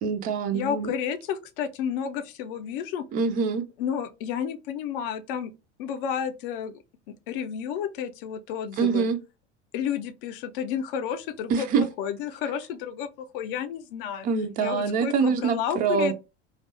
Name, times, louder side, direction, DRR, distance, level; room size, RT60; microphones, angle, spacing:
voice 1, 0.0-0.9 3.1-3.7 8.8-9.2 11.5-11.8 14.2-16.1, right 5 dB, 25° right, 0.4 m, -25 dB
voice 2, 0.5-3.1 3.8-5.5 5.8-6.8 7.3-9.0 9.7-14.3 14.6-16.1, left 8 dB, 50° left, 0.5 m, -31 dB
2.5 x 2.3 x 2.4 m
figure-of-eight pair, 80°, 35 cm